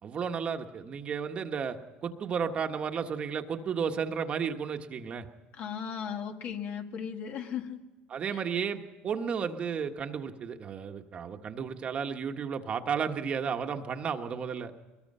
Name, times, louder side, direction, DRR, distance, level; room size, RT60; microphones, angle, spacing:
voice 1, 0.0-5.3 8.1-14.7, right 6 dB, 35° right, 6 dB, 1.4 m, -33 dB
voice 2, 5.5-7.8 8.3-8.4, left 7 dB, 50° left, 5 dB, 2.0 m, -36 dB
22.5 x 22.0 x 5.6 m, 1.1 s
cardioid pair, 135°, 3 cm